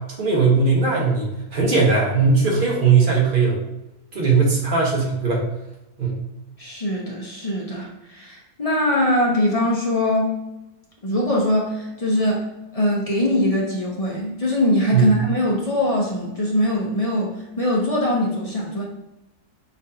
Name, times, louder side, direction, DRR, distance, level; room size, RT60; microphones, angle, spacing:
voice 1, 0.2-3.6 4.1-5.4 6.0-6.2 14.9-15.2, right 4 dB, 35° right, -3 dB, 1.1 m, -19 dB
voice 2, 6.6-10.4 11.0-12.5 12.7-18.8, left 1 dB, 40° left, -3 dB, 0.5 m, -22 dB
4.3 x 3.9 x 2.8 m, 0.96 s
omnidirectional pair, 1.7 m